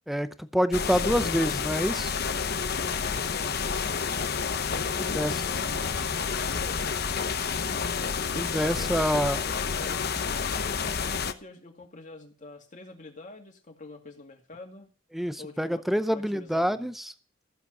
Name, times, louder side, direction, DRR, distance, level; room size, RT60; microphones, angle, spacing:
voice 1, 0.1-2.1 5.0-5.3 8.3-9.4 15.1-17.1, equal, ahead, 12 dB, 0.6 m, -27 dB
sound 1, 0.7-11.3, left 6 dB, 55° left, 0.9 m, -29 dB
voice 2, 4.7-7.0 8.6-10.2 10.5-14.9 15.4-15.8 16.1-16.9, left 2 dB, 40° left, 3 dB, 2.2 m, -46 dB
14.5 x 7.5 x 5.4 m, 0.39 s
head